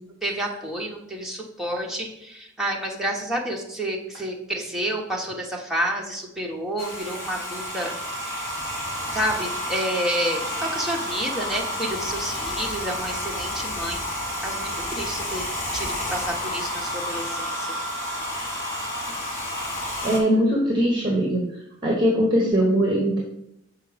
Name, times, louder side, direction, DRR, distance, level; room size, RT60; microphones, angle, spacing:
voice 1, 0.2-7.9 9.1-15.4 15.7-17.8, right 1 dB, ahead, -1 dB, 1.1 m, -29 dB
Domestic sounds home sounds, 6.8-20.2, left 1 dB, 15° left, 1.9 m, -30 dB
voice 2, 20.0-21.5 21.8-23.2, equal, 25° right, -2 dB, 1.3 m, -21 dB
6.6 x 4.8 x 5.0 m, 0.79 s
head